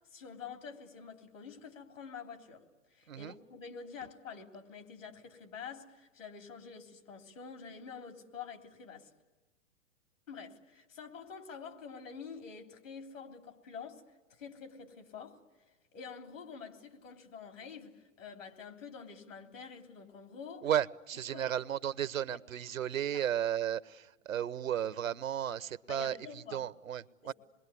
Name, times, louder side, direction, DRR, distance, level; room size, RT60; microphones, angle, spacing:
voice 1, 0.1-2.6 2.9-9.1 10.3-14.0 14.4-15.4 15.9-20.7 21.3-21.5 22.3-22.4 23.1-23.2 25.9-26.7 27.2-27.3, left 6 dB, 75° left, 3.3 m, -47 dB
voice 2, 20.6-27.3, right 10 dB, 90° right, 0.8 m, -34 dB
27.0 x 21.5 x 9.7 m
hypercardioid pair, 120°, 39 cm